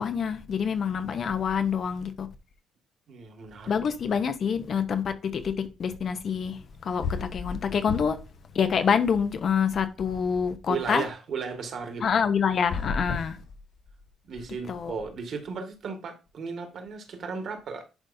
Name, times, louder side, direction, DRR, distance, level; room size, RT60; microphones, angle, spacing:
voice 1, 0.0-2.3 3.7-8.2 8.5-11.1 12.0-13.4 14.7-15.0, left 6 dB, 40° left, 0.8 m, -27 dB
voice 2, 3.1-3.7 10.7-12.0 14.2-17.8, right 5 dB, 45° right, 1.8 m, -35 dB
sound 1, 6.6-6.7 7.0-8.3 8.7-9.8 12.5-14.1, left 5 dB, 75° left, 2.4 m, -34 dB
10.5 x 5.2 x 2.7 m
cardioid pair, 180°, 0 cm